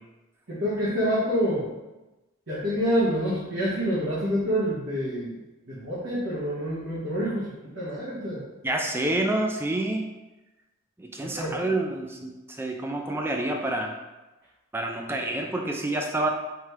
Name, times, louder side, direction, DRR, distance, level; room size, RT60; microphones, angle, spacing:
voice 1, 0.5-1.7 2.5-5.3 5.7-7.5 7.7-8.4 11.2-11.7, equal, 65° right, -10 dB, 1.3 m, -27 dB
voice 2, 8.6-10.1 11.0-13.9 14.7-16.3, right 2 dB, 10° right, 2 dB, 0.4 m, -28 dB
5.0 x 3.2 x 3.2 m, 1.1 s
head